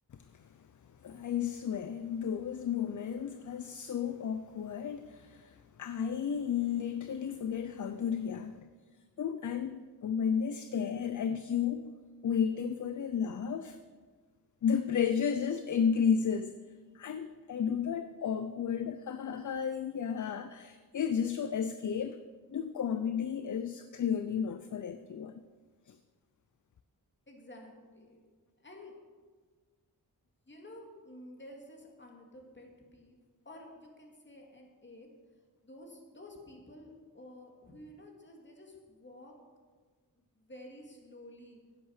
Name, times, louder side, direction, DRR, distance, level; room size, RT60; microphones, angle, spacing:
voice 1, 0.1-0.5 1.0-8.7 9.2-11.9 12.2-13.8 14.6-16.6 16.9-22.2 22.5-25.4 25.9-26.0, left 7 dB, 55° left, 0.5 m, -33 dB
voice 2, 27.3-28.2 28.6-29.0 30.5-33.2 33.4-35.1 35.6-39.3 40.1-41.6, left 1 dB, 30° left, 2.2 m, -51 dB
10.5 x 9.0 x 6.5 m
wide cardioid pair, 115°, 37 cm